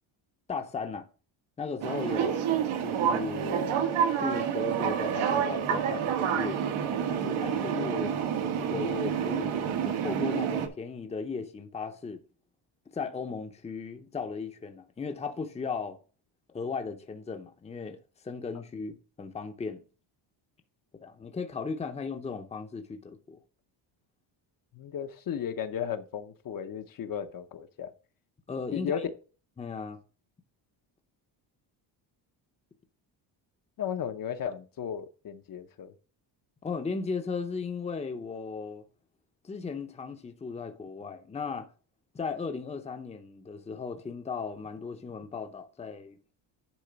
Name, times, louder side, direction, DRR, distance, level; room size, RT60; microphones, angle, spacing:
voice 1, 0.5-1.1 1.6-2.5 2.8-3.7 4.1-6.6 7.1-8.1 8.4-12.2 12.9-16.0 16.5-18.0 18.2-19.8 21.0-23.4 28.5-29.0 29.6-30.0 36.6-38.8 39.4-41.7 42.1-46.2, left 5 dB, 15° left, 0.7 m, -36 dB
sound 1, 1.8-10.7, right 8 dB, 80° right, 1.5 m, -28 dB
voice 2, 24.7-27.9 28.7-29.1 33.8-35.9, left 8 dB, 45° left, 0.7 m, -35 dB
10.0 x 3.7 x 5.1 m
cardioid pair, 140°, 47 cm